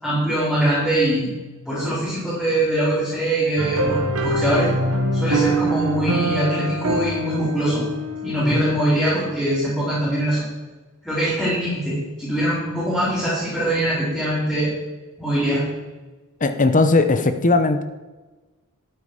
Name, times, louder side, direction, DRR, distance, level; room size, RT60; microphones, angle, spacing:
voice 1, 0.0-1.3 1.6-4.7 5.1-7.8 8.2-10.4 11.0-14.7 15.2-15.6, right 1 dB, 5° left, -12 dB, 4.7 m, -22 dB
sound 1, 3.6-9.2, right 1 dB, 80° right, 1.4 m, -24 dB
voice 2, 16.4-17.8, left 3 dB, 35° left, 9 dB, 0.8 m, -18 dB
12.5 x 8.8 x 5.0 m, 1.2 s
head